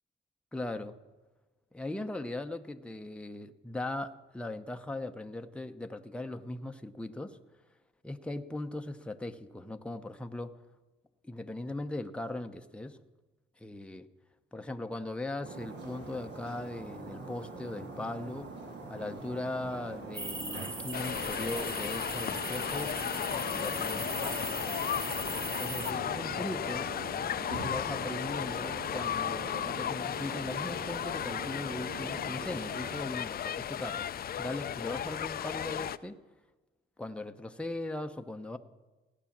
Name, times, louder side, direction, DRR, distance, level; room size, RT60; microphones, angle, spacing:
voice 1, 0.5-1.0 1.7-7.4 8.0-10.5 11.2-13.0 13.6-14.1 14.5-18.5 18.9-24.8 25.4-26.9 27.5-34.1 34.4-36.2 37.0-38.6, left 2 dB, 5° left, 6 dB, 0.8 m, -39 dB
sound 1, 15.4-33.0, right 3 dB, 60° right, 3.0 m, -43 dB
sound 2, 20.1-25.9, right 2 dB, 25° right, 1.9 m, -39 dB
sound 3, 20.9-36.0, left 10 dB, 50° left, 0.5 m, -35 dB
16.5 x 9.9 x 7.3 m, 1.2 s
cardioid pair, 90°, 20 cm